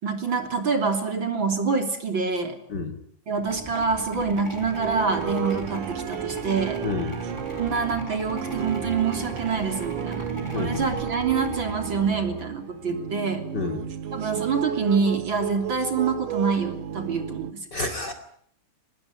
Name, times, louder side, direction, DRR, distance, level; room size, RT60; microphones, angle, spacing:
voice 1, 0.0-2.6 3.3-6.8 7.6-10.2 10.5-13.4 14.1-17.7, right 5 dB, 40° right, 6 dB, 3.8 m, -26 dB
sound 1, 3.4-12.7, left 1 dB, 10° left, 4.5 m, -39 dB
sound 2, 4.7-17.5, right 10 dB, 85° right, 3.1 m, -33 dB
voice 2, 6.8-7.2 10.5-10.8 13.5-13.8 17.7-18.1, left 3 dB, 35° left, 6 dB, 2.7 m, -29 dB
25.0 x 21.0 x 9.7 m, 0.63 s
omnidirectional pair, 3.5 m